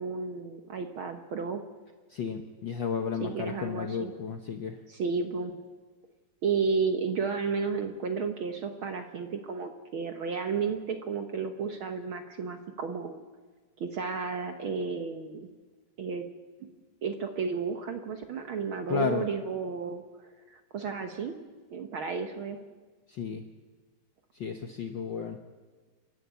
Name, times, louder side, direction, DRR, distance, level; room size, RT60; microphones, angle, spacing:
voice 1, 0.0-1.6 3.2-4.1 4.9-5.6 6.4-13.2 13.8-15.5 16.0-16.3 17.0-20.0 20.5-21.3 21.7-22.6, right 5 dB, 60° right, 7 dB, 1.4 m, -32 dB
voice 2, 2.1-4.8 18.9-19.3 23.1-23.4 24.4-25.4, left 7 dB, 80° left, 6 dB, 1.0 m, -33 dB
29.0 x 11.0 x 8.3 m, 1.4 s
omnidirectional pair, 3.5 m